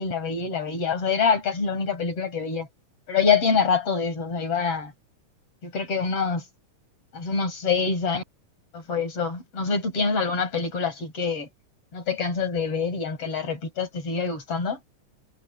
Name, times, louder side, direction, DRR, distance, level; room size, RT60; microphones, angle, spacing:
voice 1, 0.0-2.7 3.1-4.9 5.6-6.4 7.1-8.2 8.7-11.5 11.9-14.8, left 5 dB, 45° left, 5.9 m, -25 dB
omnidirectional pair, 3.6 m